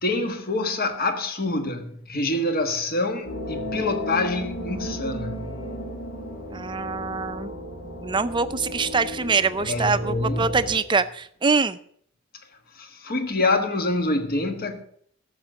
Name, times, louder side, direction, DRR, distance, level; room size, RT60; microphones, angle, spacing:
voice 1, 0.0-5.6 9.6-10.6 12.7-14.8, left 2 dB, 45° left, 1.4 m, -26 dB
sound 1, 3.2-10.8, equal, 70° left, 2.8 m, -34 dB
voice 2, 6.5-7.5 7.9-11.8, right 4 dB, 25° right, 0.5 m, -24 dB
12.5 x 6.8 x 6.4 m
head